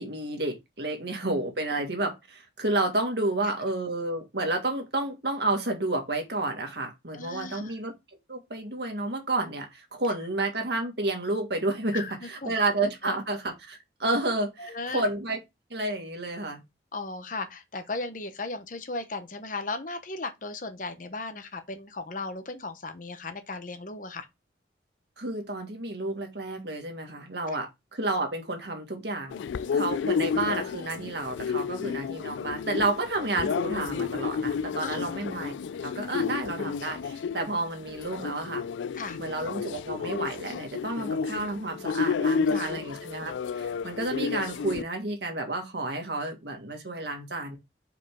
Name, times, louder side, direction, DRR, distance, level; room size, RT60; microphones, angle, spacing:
voice 1, 0.0-7.9 8.3-15.4 15.7-16.6 25.2-29.4 29.7-35.6 35.8-38.6 39.2-47.6, right 2 dB, 65° right, 1.9 m, -30 dB
voice 2, 7.1-7.7 11.9-12.6 13.0-13.1 14.6-15.0 16.9-24.3 29.6-30.0 34.8-35.0 38.9-39.2 42.5-42.7, left 3 dB, 45° left, 1.0 m, -36 dB
sound 1, 29.3-44.8, left 6 dB, 80° left, 0.3 m, -31 dB
5.2 x 4.9 x 3.6 m
head